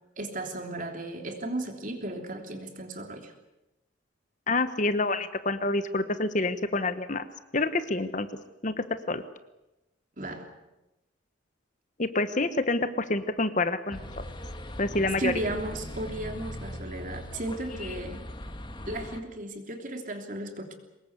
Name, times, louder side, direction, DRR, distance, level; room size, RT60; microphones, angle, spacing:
voice 1, 0.2-3.3 10.2-10.5 15.2-18.2 18.9-20.7, right 1 dB, 40° right, 4 dB, 3.2 m, -35 dB
voice 2, 4.5-7.3 7.5-8.3 8.6-9.2 12.0-14.0 14.8-15.3, left 2 dB, 40° left, 11 dB, 1.1 m, -27 dB
sound 1, 13.9-19.2, left 1 dB, 25° left, 1.7 m, -40 dB
24.0 x 20.5 x 8.2 m, 0.93 s
head